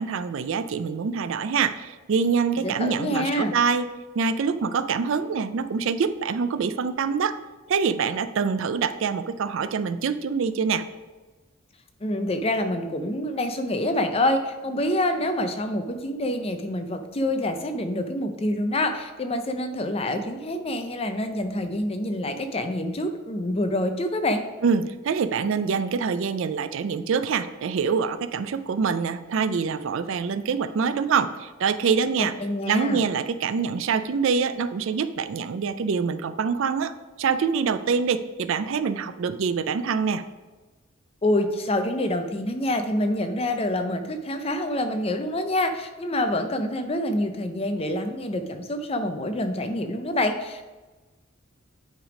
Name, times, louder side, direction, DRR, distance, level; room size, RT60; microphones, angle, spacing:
voice 1, 0.0-3.9 4.2-7.4 7.7-10.8 24.6-32.3 32.7-36.9 37.2-40.2, right 5 dB, 60° right, 12 dB, 0.4 m, -25 dB
voice 2, 2.6-3.6 12.0-24.4 32.2-33.0 41.2-50.6, left 1 dB, 25° left, 7 dB, 0.5 m, -26 dB
8.7 x 3.4 x 4.9 m, 1.2 s
head